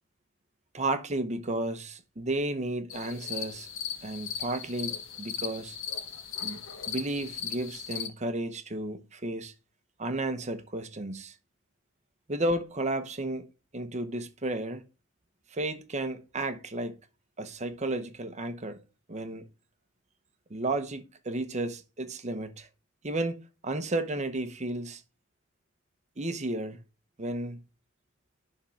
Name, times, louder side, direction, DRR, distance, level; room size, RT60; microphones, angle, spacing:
voice 1, 0.7-3.7 4.0-5.8 6.4-9.5 10.0-11.3 12.3-13.5 13.7-14.8 15.5-17.0 17.4-18.8 19.1-19.4 20.5-22.7 23.0-25.0 26.2-26.8 27.2-27.6, right 2 dB, 35° right, 0.9 m, -33 dB
sound 1, 2.9-8.1, left 7 dB, 80° left, 1.3 m, -37 dB
11.0 x 3.7 x 4.6 m
head